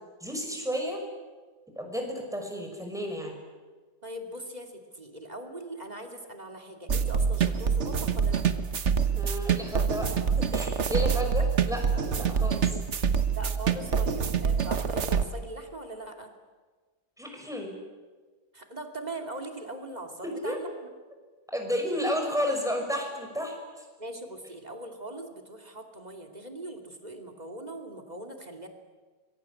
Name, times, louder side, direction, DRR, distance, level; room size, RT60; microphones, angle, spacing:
voice 1, 0.2-1.0 1.8-3.4 9.1-10.1 10.4-12.8 17.2-17.7 20.2-20.6 21.5-23.9, equal, ahead, 2 dB, 5.8 m, -32 dB
voice 2, 4.0-8.4 13.3-16.3 18.5-20.7 24.0-28.7, right 1 dB, 25° right, 4 dB, 2.8 m, -41 dB
sound 1, 6.9-15.2, right 6 dB, 45° right, 1.3 m, -26 dB
25.5 x 22.5 x 8.6 m, 1.4 s
omnidirectional pair, 1.8 m